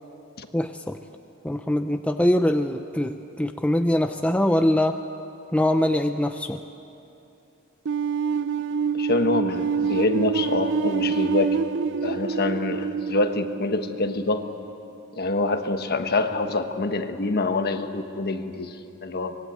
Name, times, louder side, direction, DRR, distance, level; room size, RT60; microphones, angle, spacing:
voice 1, 0.5-1.0 1.4-5.0 5.5-6.6, left 1 dB, 5° left, 6 dB, 0.5 m, -23 dB
sound 1, 7.9-14.7, right 6 dB, 55° right, 0.5 m, -26 dB
voice 2, 8.9-11.6 12.0-14.4 15.1-19.4, left 2 dB, 45° left, 7 dB, 1.3 m, -26 dB
24.5 x 21.0 x 8.2 m, 2.8 s
head